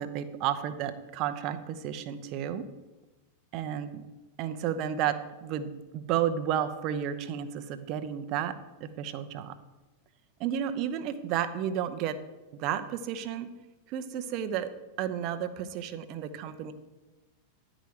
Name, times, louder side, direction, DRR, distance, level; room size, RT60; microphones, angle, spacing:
voice 1, 0.0-2.6 3.5-4.0 4.4-5.1 5.4-8.5 8.8-9.5 10.4-12.2 12.6-13.5 13.9-14.7 15.0-16.7, right 9 dB, 40° right, 9 dB, 0.8 m, -32 dB
10.5 x 5.0 x 7.5 m, 1.1 s
figure-of-eight pair, 90°, 0 cm